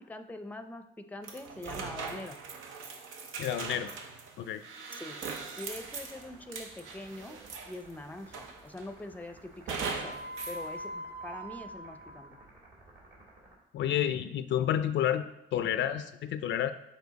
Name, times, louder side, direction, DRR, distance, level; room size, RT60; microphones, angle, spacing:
voice 1, 0.0-2.4 4.9-5.2 5.6-7.4 7.6-10.2 10.5-12.4, left 2 dB, 10° left, 8 dB, 0.5 m, -43 dB
sound 1, 1.2-7.9 8.3-8.9 9.7-10.6, right 5 dB, 90° right, 0.8 m, -40 dB
voice 2, 3.4-3.9 4.4-4.6 13.7-16.7, left 10 dB, 70° left, 11 dB, 0.4 m, -30 dB
sound 2, 5.6-13.5, right 2 dB, 70° right, 2.4 m, -56 dB
sound 3, 9.8-12.4, right 1 dB, 55° right, 0.6 m, -42 dB
7.1 x 4.4 x 4.0 m, 0.84 s
cardioid pair, 90°, 20 cm